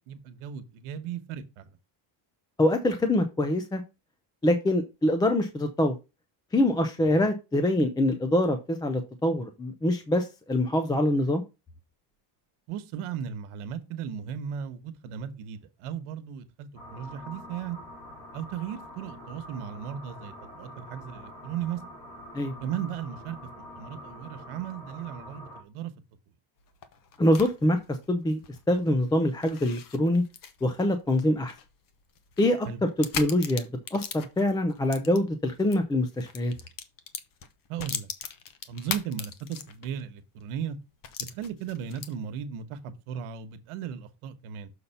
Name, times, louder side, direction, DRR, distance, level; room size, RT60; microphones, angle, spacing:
voice 1, 0.0-1.7 7.0-7.1 12.7-17.8 18.3-21.8 22.6-23.4 23.7-25.9 32.6-32.8 37.7-38.1 38.7-40.8 41.3-44.7, right 8 dB, 85° right, 1.3 m, -36 dB
voice 2, 2.6-3.8 4.4-5.9 6.5-11.4 22.3-22.5 27.2-27.8 28.1-28.4 28.7-30.2 30.6-31.5 32.4-36.5, left 1 dB, 10° left, 0.3 m, -25 dB
sound 1, 16.8-25.6, left 1 dB, 65° left, 4.9 m, -45 dB
sound 2, 26.6-35.8 36.1-40.0 40.4-40.5 41.0-42.4, left 8 dB, 40° left, 0.9 m, -40 dB
6.7 x 4.1 x 5.6 m
cardioid pair, 170°, 49 cm